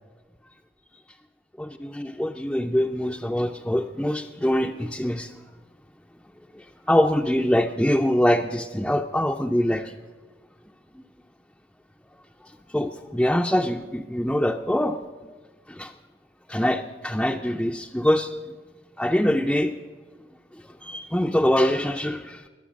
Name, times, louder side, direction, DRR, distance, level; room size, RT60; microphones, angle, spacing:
voice 1, 1.6-5.3 6.5-10.0 10.9-11.0 12.4-15.0 15.7-15.9 16.5-18.4 19.0-19.8 20.8-22.5, left 1 dB, 5° left, 1 dB, 0.5 m, -24 dB
22.0 x 9.0 x 6.4 m, 1.3 s
head